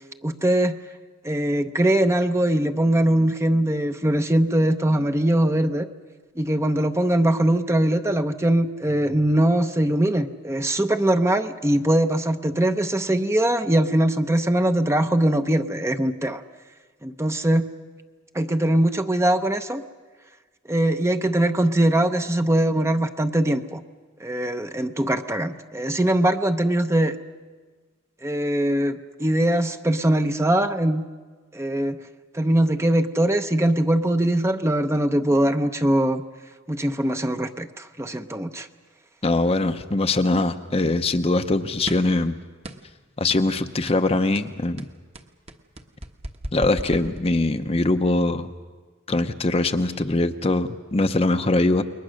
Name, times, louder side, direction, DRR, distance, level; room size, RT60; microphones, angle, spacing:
voice 1, 0.2-0.8 1.2-5.9 6.4-16.4 17.0-17.7 18.3-19.8 20.7-23.8 24.2-27.2 28.2-31.0 31.5-32.0 32.3-36.2 36.7-38.7, right 1 dB, 15° right, 7 dB, 0.7 m, -21 dB
voice 2, 39.2-42.3 43.2-44.8 46.5-48.5 49.1-51.8, left 2 dB, 30° left, 8 dB, 0.7 m, -22 dB
sound 1, 41.9-42.2 42.6-43.0 43.3-43.5 43.9-44.1 44.4-47.7, right 1 dB, 30° right, 1.1 m, -36 dB
28.5 x 22.0 x 6.4 m, 1.4 s
head